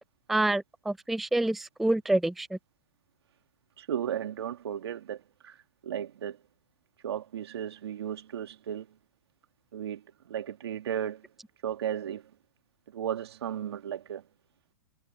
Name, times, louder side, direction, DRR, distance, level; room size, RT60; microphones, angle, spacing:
voice 1, 0.3-2.6, right 2 dB, ahead, 0.4 m, -27 dB
voice 2, 3.8-5.6 5.8-6.4 7.0-8.9 9.7-10.0 10.3-11.3 11.6-12.2 12.9-14.2, right 9 dB, 80° right, 2.2 m, -35 dB
hypercardioid pair, 135°, 13 cm